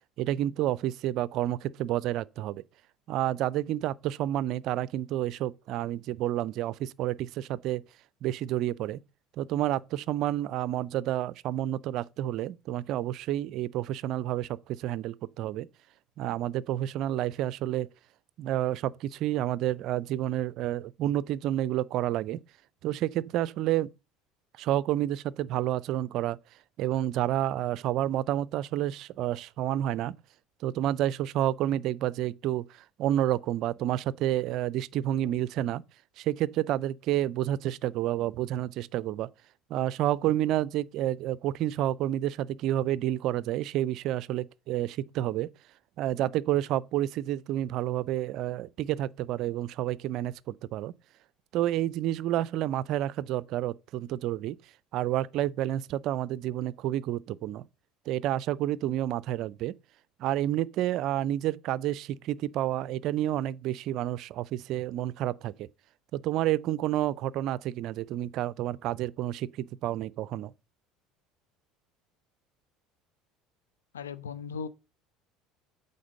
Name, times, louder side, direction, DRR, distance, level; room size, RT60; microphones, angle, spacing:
voice 1, 0.2-2.6 3.1-7.8 8.2-9.0 9.4-15.7 16.2-17.9 18.4-22.4 22.8-23.9 24.6-26.4 26.8-30.2 30.6-35.8 36.2-39.3 39.7-45.5 46.0-50.9 51.5-54.6 54.9-57.6 58.1-59.7 60.2-65.7 66.1-70.5, right 13 dB, 55° right, 0.4 m, -29 dB
voice 2, 73.9-74.7, left 6 dB, 80° left, 0.5 m, -37 dB
8.6 x 4.1 x 6.4 m
figure-of-eight pair, 65°, 0 cm